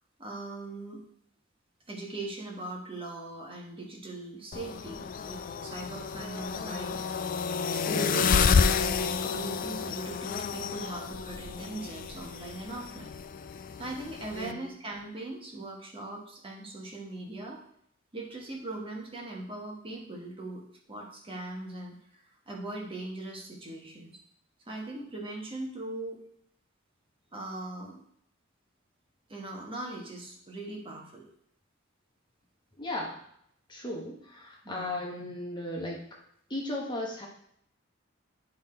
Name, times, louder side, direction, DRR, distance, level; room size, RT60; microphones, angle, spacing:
voice 1, 0.2-1.0 1.9-7.1 7.7-13.1 13.8-17.7 18.1-24.2 24.7-26.2 27.3-28.0 29.3-31.3 34.6-35.0, right 2 dB, 25° right, -1 dB, 1.3 m, -40 dB
sound 1, 4.5-14.5, left 6 dB, 45° left, 0.4 m, -30 dB
voice 2, 7.9-8.3 14.3-14.6 32.8-33.2 33.7-36.0 36.5-37.3, left 1 dB, 25° left, -2 dB, 1.3 m, -35 dB
9.7 x 3.9 x 4.4 m, 0.70 s
head